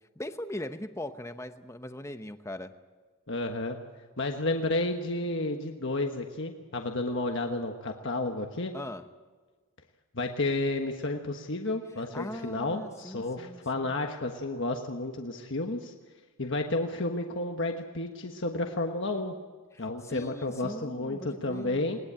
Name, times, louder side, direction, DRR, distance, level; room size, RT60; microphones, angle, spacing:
voice 1, 0.2-2.7 8.7-9.0 12.1-14.0 19.7-21.9, left 1 dB, 15° left, 9 dB, 0.9 m, -40 dB
voice 2, 3.3-3.8 4.2-8.7 10.1-15.9 16.4-19.3 19.8-22.0, left 2 dB, 55° left, 3 dB, 1.4 m, -31 dB
20.5 x 19.5 x 8.9 m, 1.4 s
head